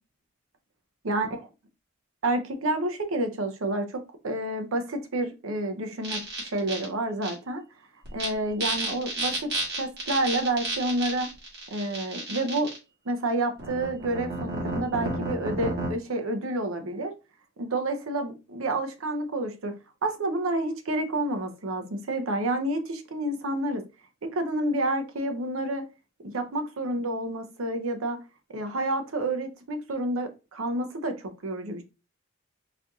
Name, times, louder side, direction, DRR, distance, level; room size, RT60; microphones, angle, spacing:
voice 1, 1.0-1.4 2.2-7.6 8.1-9.5 9.8-11.3 11.7-12.7 13.1-17.1 17.6-19.7 20.0-23.8 24.2-25.8 26.2-28.2 28.5-31.8, right 1 dB, 75° right, 0.7 m, -29 dB
sound 1, 6.0-6.8 7.2-7.3 8.0-8.3 8.6-12.8 13.6-15.9, right 2 dB, 50° right, 1.4 m, -32 dB
4.3 x 2.6 x 2.3 m
head